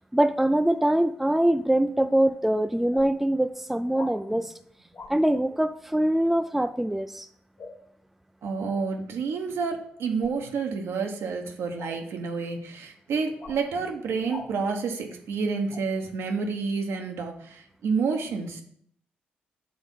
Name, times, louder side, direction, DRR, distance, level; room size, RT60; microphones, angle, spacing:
voice 1, 0.1-4.5 5.1-7.3, right 1 dB, 5° right, 11 dB, 0.4 m, -23 dB
sound 1, 2.2-2.4 2.9-3.1 3.9-4.2 4.9-5.2 7.6-7.8 10.2-10.4 11.8-12.0 13.4-13.6 14.3-14.5 15.7-15.8, left 4 dB, 50° left, 1.0 m, -41 dB
voice 2, 8.4-18.6, right 5 dB, 70° right, 3 dB, 0.9 m, -29 dB
6.4 x 3.5 x 5.5 m, 0.66 s
hypercardioid pair, 45°, 4 cm